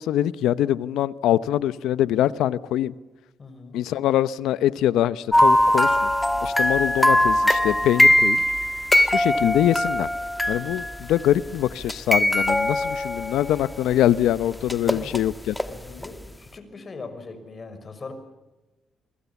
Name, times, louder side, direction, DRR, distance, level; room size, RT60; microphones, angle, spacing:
voice 1, 0.0-2.9 3.7-6.1 6.4-8.4 9.1-10.1 10.5-15.5, left 12 dB, 85° left, 16 dB, 0.9 m, -23 dB
voice 2, 3.4-3.8 14.8-15.2 15.6-18.1, left 3 dB, 35° left, 9 dB, 5.9 m, -40 dB
sound 1, 5.3-11.2 11.8-13.9 14.7-15.7 16.0-16.1, left 1 dB, 5° left, 1.6 m, -21 dB
28.5 x 21.0 x 7.2 m, 1.1 s
cardioid pair, 90°, 0 cm